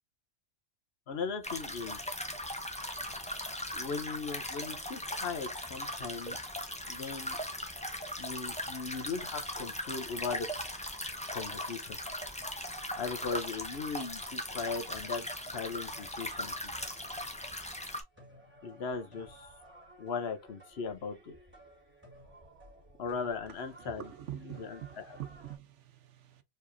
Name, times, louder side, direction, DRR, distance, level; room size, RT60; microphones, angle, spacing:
voice 1, 1.1-2.1 3.7-6.4 6.9-7.4 8.2-10.5 11.3-12.0 12.9-16.7 18.6-19.5 20.0-21.4 23.0-24.0 24.6-25.0, left 5 dB, 60° left, 1.0 m, -38 dB
sound 1, 1.4-18.0, left 1 dB, 5° left, 0.7 m, -39 dB
sound 2, 15.8-25.6, right 1 dB, 10° right, 2.6 m, -56 dB
voice 2, 23.8-26.4, right 11 dB, 80° right, 1.1 m, -45 dB
4.7 x 3.5 x 2.6 m
omnidirectional pair, 1.2 m